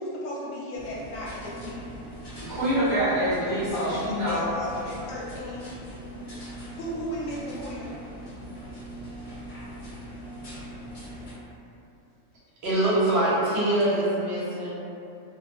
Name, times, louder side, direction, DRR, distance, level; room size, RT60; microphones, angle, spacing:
voice 1, 0.0-1.9 3.7-5.7 6.7-7.9, equal, 85° left, -5 dB, 1.0 m, -35 dB
sound 1, 0.7-11.3, right 1 dB, 60° left, 1.0 m, -41 dB
voice 2, 2.5-4.5, equal, 25° left, -16 dB, 0.7 m, -25 dB
voice 3, 12.6-14.7, right 1 dB, 60° right, -8 dB, 0.8 m, -24 dB
2.2 x 2.1 x 2.8 m, 2.6 s
omnidirectional pair, 1.4 m